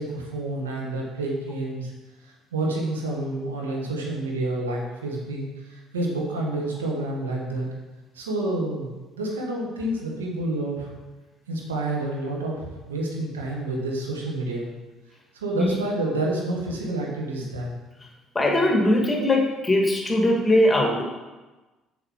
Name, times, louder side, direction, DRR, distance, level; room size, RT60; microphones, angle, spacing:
voice 1, 0.0-1.9 2.2-7.7 8.1-10.9 11.5-14.7 15.3-17.7, right 2 dB, 90° right, -2 dB, 1.6 m, -29 dB
voice 2, 18.3-21.0, left 1 dB, 20° left, 0 dB, 1.8 m, -21 dB
7.3 x 6.6 x 4.6 m, 1.2 s
hypercardioid pair, 55°, 0 cm